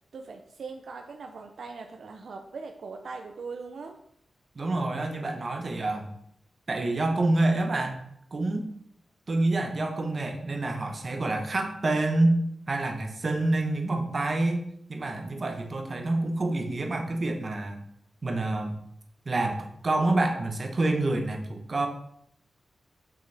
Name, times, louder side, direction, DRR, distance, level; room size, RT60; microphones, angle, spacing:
voice 1, 0.1-4.0, right 4 dB, 70° right, 5 dB, 0.5 m, -40 dB
voice 2, 4.5-6.1 6.7-8.0 8.3-8.7 9.3-17.8 18.2-18.8 19.3-21.9, right 2 dB, 35° right, 4 dB, 0.9 m, -27 dB
6.6 x 6.0 x 3.4 m, 0.71 s
wide cardioid pair, 180°, 0 cm